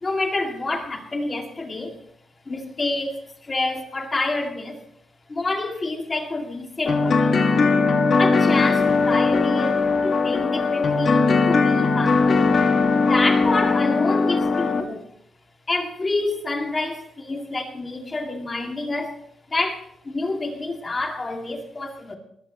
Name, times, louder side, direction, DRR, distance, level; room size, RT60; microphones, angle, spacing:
voice 1, 0.0-2.0 2.5-4.8 5.3-7.5 8.2-12.5 12.9-15.1 15.7-19.2 19.5-22.2, left 2 dB, 20° left, 3 dB, 2.2 m, -28 dB
sound 1, 6.9-14.8, left 4 dB, 40° left, 1.9 m, -19 dB
20.5 x 14.5 x 3.0 m, 0.69 s
wide cardioid pair, 155°, 0 cm